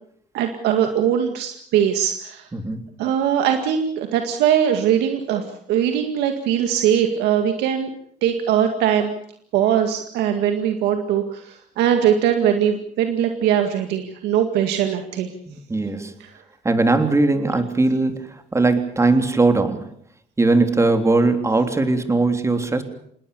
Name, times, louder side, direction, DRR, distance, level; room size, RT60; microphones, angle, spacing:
voice 1, 0.3-2.5 3.0-5.4 5.7-7.9 8.2-9.1 9.5-15.3, right 9 dB, 90° right, 6 dB, 2.1 m, -21 dB
voice 2, 15.5-16.1 16.6-19.9 20.4-22.8, right 3 dB, 15° right, 7 dB, 3.4 m, -19 dB
27.0 x 20.5 x 7.0 m, 0.67 s
cardioid pair, 110°, 17 cm